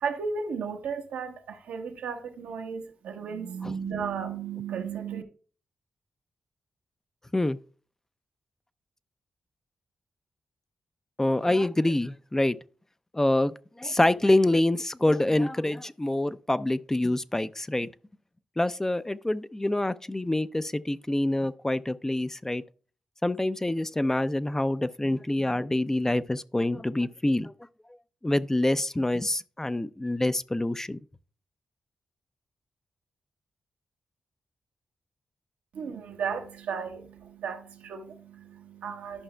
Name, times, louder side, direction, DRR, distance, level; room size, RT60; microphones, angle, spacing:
voice 1, 0.0-5.2 35.7-39.2, right 6 dB, 80° right, 0.9 m, -34 dB
voice 2, 11.2-12.6 13.1-17.9 18.6-22.6 23.2-27.5 28.2-31.0, left 1 dB, 15° left, 0.4 m, -26 dB
11.5 x 5.5 x 2.2 m
supercardioid pair, 40°, 3 cm